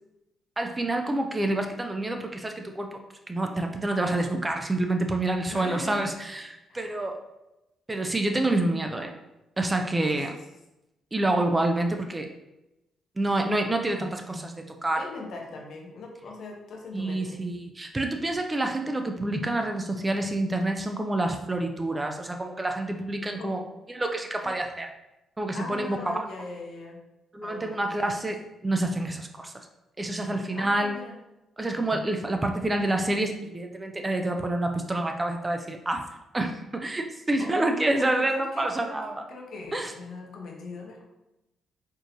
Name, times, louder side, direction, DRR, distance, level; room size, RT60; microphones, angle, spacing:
voice 1, 0.6-3.0 3.3-7.2 7.9-9.1 9.6-10.3 11.1-12.3 13.2-15.0 16.9-23.6 23.9-24.9 25.4-26.2 27.3-29.7 30.0-31.0 31.6-36.0 36.3-39.2 39.7-39.9, right 2 dB, 15° right, 4 dB, 0.3 m, -28 dB
voice 2, 5.5-6.0 6.7-7.0 10.1-10.4 15.0-17.4 23.3-23.7 24.4-24.5 25.5-27.0 27.4-28.1 30.5-31.2 37.4-38.9 39.3-41.0, left 3 dB, 60° left, 0 dB, 0.9 m, -41 dB
4.3 x 3.0 x 2.6 m, 0.94 s
cardioid pair, 125°, 0 cm